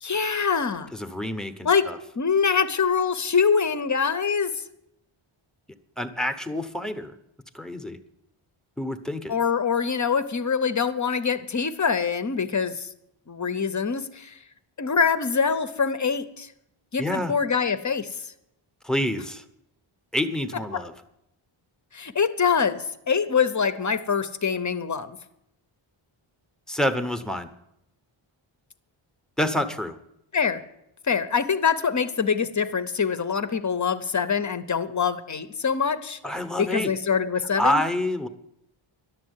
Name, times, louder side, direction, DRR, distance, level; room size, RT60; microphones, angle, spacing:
voice 1, 0.0-0.9 1.6-1.9 2.2-4.5 9.3-12.9 13.3-14.4 14.8-16.5 16.9-18.2 20.7-20.8 21.9-25.2 30.3-30.6 31.1-36.2 36.6-37.8, left 6 dB, 35° left, 11 dB, 0.7 m, -24 dB
voice 2, 0.9-2.0 6.0-7.2 7.5-8.0 8.8-9.3 17.0-17.3 18.8-19.4 20.1-20.9 26.7-27.5 29.4-30.0 36.2-36.9 37.6-38.3, left 1 dB, ahead, 7 dB, 0.8 m, -27 dB
11.5 x 7.3 x 9.5 m, 0.80 s
wide cardioid pair, 150°, 50 cm